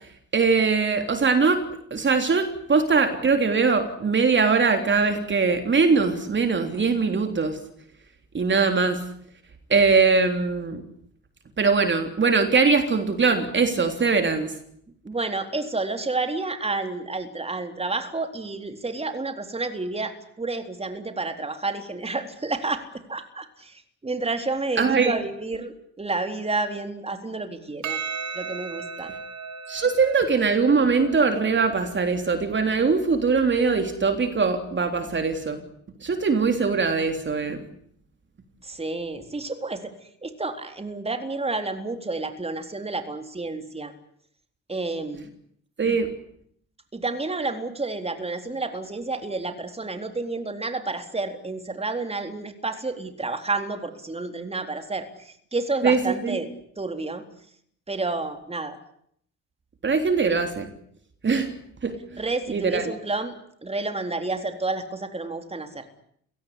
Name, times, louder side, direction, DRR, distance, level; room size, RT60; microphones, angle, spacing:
voice 1, 0.3-1.6 1.9-7.6 8.3-9.0 9.7-10.8 11.6-14.5 24.8-25.1 29.7-35.6 36.0-37.6 45.8-46.1 55.8-56.4 59.8-60.7 61.2-61.5 61.8-62.2 62.5-62.8, right 4 dB, 40° right, 7 dB, 3.5 m, -21 dB
voice 2, 15.0-22.8 23.1-28.0 28.3-29.1 38.6-39.9 40.2-43.9 44.7-45.3 45.9-46.0 46.9-56.5 56.8-57.2 57.9-58.8 62.2-63.3 63.6-65.8, right 3 dB, 20° right, 7 dB, 3.9 m, -30 dB
Percussion, 27.8-32.5, right 5 dB, 70° right, 3.8 m, -36 dB
29.5 x 18.0 x 9.9 m, 0.69 s
cardioid pair, 90°, 30 cm